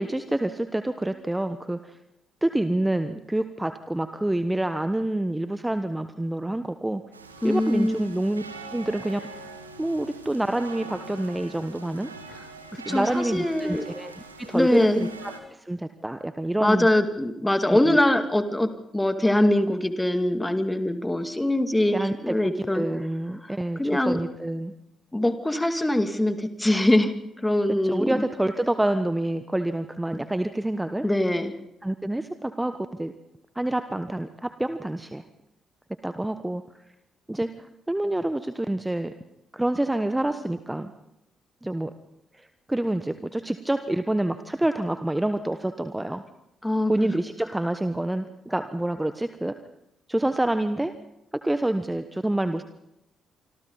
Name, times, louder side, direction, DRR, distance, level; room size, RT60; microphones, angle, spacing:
voice 1, 0.0-2.0 2.4-7.0 7.4-8.4 8.7-9.3 9.8-12.1 12.8-16.9 17.7-17.8 21.9-24.7 27.7-31.1 31.8-33.1 33.5-35.2 36.0-36.6 37.3-39.1 39.5-40.9 41.6-41.9 42.3-46.2 46.9-49.6 50.1-50.9 51.3-52.6, right 1 dB, 10° right, 10 dB, 1.2 m, -27 dB
sound 1, 7.1-15.4, right 2 dB, 85° right, 1.6 m, -43 dB
voice 2, 7.4-8.1 12.7-13.8 14.5-15.1 16.6-22.8 23.4-24.2 25.1-27.1 27.4-28.2 31.0-31.5 46.6-47.1, left 1 dB, 10° left, 8 dB, 2.4 m, -23 dB
26.5 x 26.0 x 4.1 m, 0.90 s
figure-of-eight pair, 40°, 0 cm